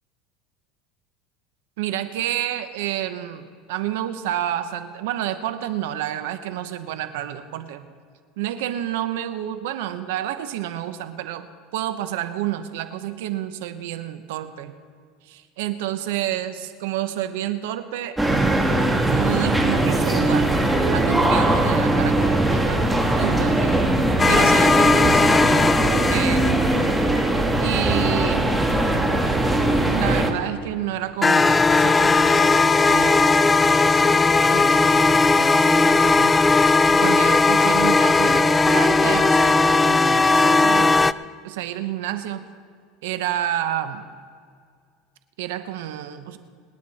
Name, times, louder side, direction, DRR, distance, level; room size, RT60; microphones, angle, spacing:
voice 1, 1.8-7.9 8.4-11.5 11.7-14.7 15.2-18.2 19.1-20.5 20.9-22.8 23.1-23.9 24.3-25.2 26.1-26.9 27.6-28.7 29.8-34.2 34.5-36.4 36.9-40.9 41.4-42.4 43.0-44.0 45.4-46.4, right 12 dB, 80° right, 10 dB, 1.1 m, -29 dB
sound 1, 18.2-30.3, right 1 dB, 5° right, 1.5 m, -20 dB
sound 2, 24.2-26.9 31.2-41.1, left 3 dB, 15° left, 0.3 m, -17 dB
26.0 x 9.6 x 4.3 m, 2.1 s
supercardioid pair, 125°, 0 cm